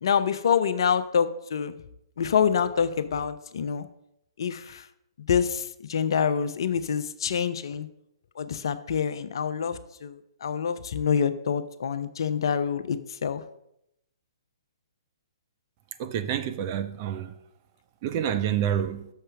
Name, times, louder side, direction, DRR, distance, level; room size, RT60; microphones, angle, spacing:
voice 1, 0.0-1.8 2.2-3.9 4.4-4.9 5.2-7.9 8.4-13.4, left 7 dB, 55° left, 0.6 m, -26 dB
voice 2, 16.0-17.4 18.0-19.1, right 9 dB, 35° right, 0.6 m, -28 dB
6.6 x 5.5 x 6.1 m
figure-of-eight pair, 125°, 3 cm